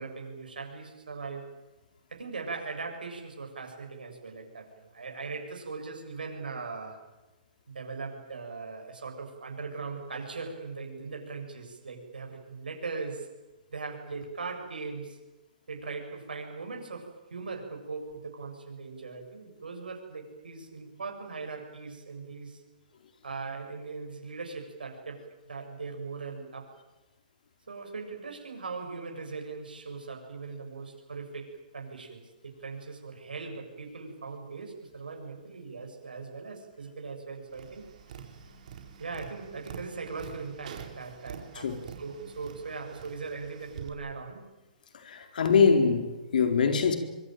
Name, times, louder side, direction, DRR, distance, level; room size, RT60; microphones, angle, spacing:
voice 1, 0.0-1.5 2.1-7.0 7.7-13.3 13.7-15.2 15.7-22.6 23.2-26.7 27.7-37.9 39.0-44.4, right 4 dB, 85° right, 7.3 m, -40 dB
Tap, 37.5-43.9, right 8 dB, 55° right, 4.5 m, -46 dB
voice 2, 44.9-47.0, left 5 dB, 65° left, 4.3 m, -23 dB
25.0 x 23.5 x 9.3 m
hypercardioid pair, 140°, 5 cm